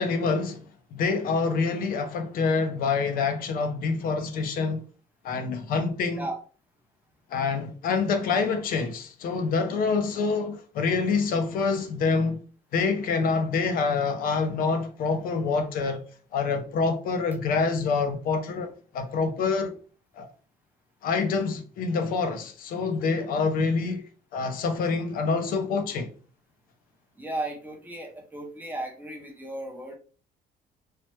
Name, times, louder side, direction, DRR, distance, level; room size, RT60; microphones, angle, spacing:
voice 1, 0.0-4.8 5.2-6.3 7.3-12.4 12.7-16.0 16.3-19.7 20.2-20.3 21.0-24.0 24.3-26.1, left 4 dB, 55° left, 0.4 m, -26 dB
voice 2, 27.2-30.0, right 1 dB, 10° right, 0.5 m, -35 dB
3.1 x 2.0 x 2.9 m
cardioid pair, 170°, 18 cm